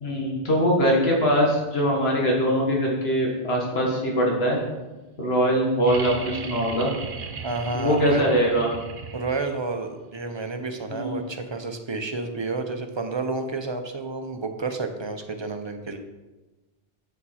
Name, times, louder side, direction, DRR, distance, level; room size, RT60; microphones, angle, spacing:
voice 1, 0.0-4.6 5.2-6.9 7.7-8.7 10.9-11.2, equal, 80° left, -2 dB, 1.7 m, -22 dB
sound 1, 5.9-9.6 11.3-11.4, right 5 dB, 60° right, 0.9 m, -36 dB
voice 2, 7.4-8.2 9.1-16.0, right 3 dB, 30° right, 6 dB, 0.6 m, -30 dB
7.0 x 7.0 x 4.2 m, 1.1 s
omnidirectional pair, 1.0 m